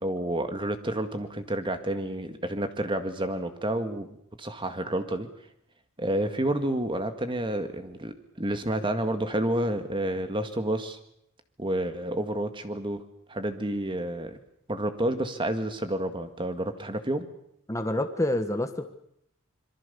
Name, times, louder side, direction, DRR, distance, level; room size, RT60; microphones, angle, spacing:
voice 1, 0.0-4.1 4.4-5.3 6.0-11.0 11.6-13.0 13.3-14.4 14.7-17.3, right 1 dB, 25° right, 8 dB, 1.9 m, -29 dB
voice 2, 17.7-18.9, left 1 dB, 15° left, 7 dB, 1.3 m, -27 dB
26.5 x 22.5 x 7.0 m, 0.74 s
head